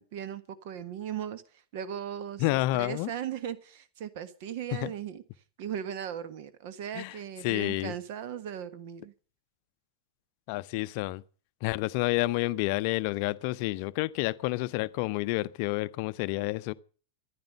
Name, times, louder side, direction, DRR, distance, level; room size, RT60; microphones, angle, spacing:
voice 1, 0.0-1.4 1.7-5.2 5.6-9.1, right 9 dB, 50° right, 1.4 m, -38 dB
voice 2, 2.4-3.1 4.7-4.9 6.9-7.2 7.4-7.9 10.5-11.2 11.6-16.7, left 19 dB, 45° left, 0.6 m, -29 dB
14.5 x 11.0 x 6.7 m
figure-of-eight pair, 90°, 0 cm